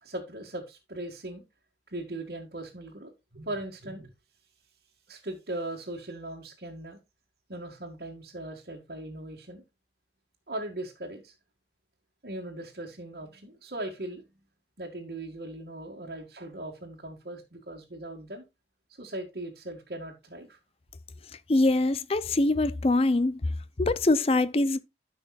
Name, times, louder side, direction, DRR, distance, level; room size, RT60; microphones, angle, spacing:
voice 1, 0.0-1.4 1.9-4.1 5.1-7.0 7.5-9.6 10.5-11.3 12.2-14.2 14.8-18.4 19.0-20.6, right 1 dB, 60° right, 1.7 m, -39 dB
voice 2, 21.5-23.4 23.8-24.8, left 2 dB, 35° left, 0.5 m, -23 dB
13.5 x 5.8 x 2.4 m
head